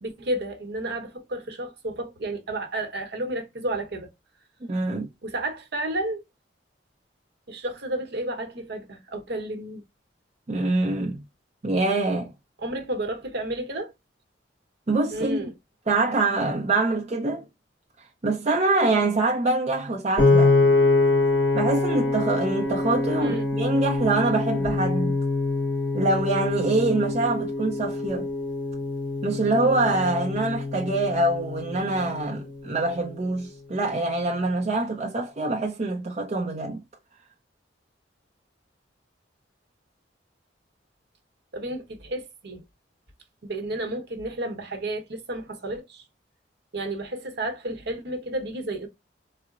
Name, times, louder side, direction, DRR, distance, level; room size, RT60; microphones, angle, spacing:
voice 1, 0.0-4.1 5.2-6.2 7.5-9.8 12.6-13.9 15.1-15.5 23.2-23.5 41.5-42.6 43.4-46.0 46.7-48.9, right 1 dB, 65° right, 0.9 m, -31 dB
voice 2, 4.7-5.1 10.5-11.2 11.6-12.3 14.9-15.4 15.9-17.4 18.2-20.5 21.5-25.2 25.9-28.3 29.2-36.8, right 2 dB, 35° right, 0.5 m, -25 dB
Piano, 20.2-32.4, left 3 dB, 25° left, 1.7 m, -24 dB
3.8 x 2.0 x 2.3 m
head